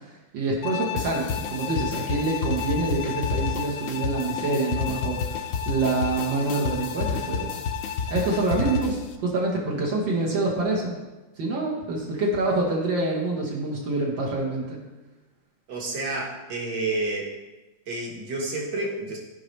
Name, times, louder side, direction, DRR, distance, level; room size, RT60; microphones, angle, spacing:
voice 1, 0.0-5.4 5.7-7.6 8.1-11.0 11.4-14.8, right 2 dB, 80° right, -3 dB, 2.1 m, -26 dB
Bowed string instrument, 0.6-9.0, left 10 dB, 80° left, 1.3 m, -34 dB
sound 1, 1.0-9.1, left 5 dB, 65° left, 0.8 m, -31 dB
voice 2, 15.7-17.3 17.9-19.2, right 2 dB, 65° right, -2 dB, 2.2 m, -29 dB
15.5 x 5.2 x 3.3 m, 1.1 s
omnidirectional pair, 2.0 m